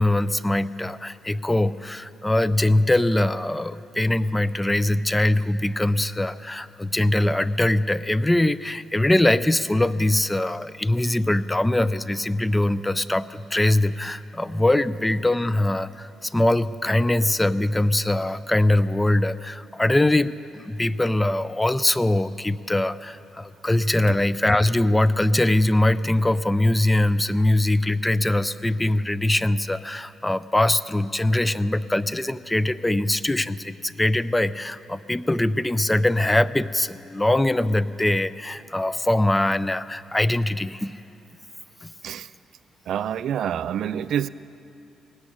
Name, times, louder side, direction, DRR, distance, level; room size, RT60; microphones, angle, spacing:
voice 1, 0.0-41.0 41.8-41.9, left 1 dB, 10° left, 16 dB, 0.4 m, -22 dB
voice 2, 42.9-44.3, right 9 dB, 70° right, 15 dB, 0.3 m, -27 dB
17.5 x 8.3 x 9.9 m, 2.7 s
cardioid pair, 90°, 0 cm